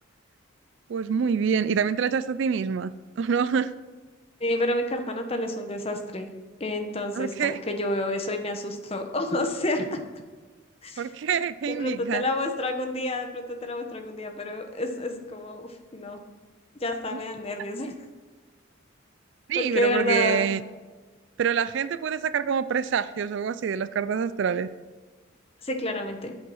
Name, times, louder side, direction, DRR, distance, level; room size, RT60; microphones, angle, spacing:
voice 1, 0.9-3.7 7.2-7.6 11.0-12.2 17.1-17.2 19.5-20.6 21.4-24.7, right 7 dB, 55° right, 15 dB, 0.3 m, -26 dB
voice 2, 4.4-6.3 6.6-10.0 10.8-11.1 11.7-16.2 16.8-17.9 19.5-20.5 25.6-26.3, left 1 dB, 30° left, 5 dB, 1.0 m, -29 dB
8.2 x 7.9 x 5.6 m, 1.3 s
head